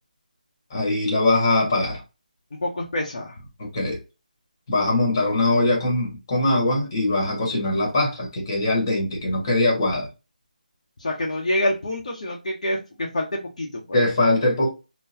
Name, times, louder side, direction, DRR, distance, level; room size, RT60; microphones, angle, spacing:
voice 1, 0.7-2.0 3.6-4.0 4.7-10.1 13.9-14.7, left 2 dB, 25° left, 1.3 m, -22 dB
voice 2, 2.5-3.5 11.0-14.0, left 1 dB, 50° left, 0.9 m, -27 dB
3.8 x 2.2 x 2.8 m
figure-of-eight pair, 170°, 5 cm